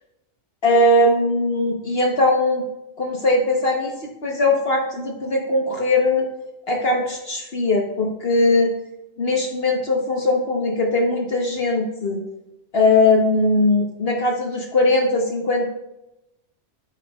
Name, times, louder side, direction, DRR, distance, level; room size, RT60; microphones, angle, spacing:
voice 1, 0.6-2.6 3.0-6.2 6.7-8.7 9.2-12.2 12.7-15.7, left 2 dB, 55° left, 0 dB, 1.3 m, -20 dB
11.5 x 9.1 x 2.3 m, 0.91 s
omnidirectional pair, 1.3 m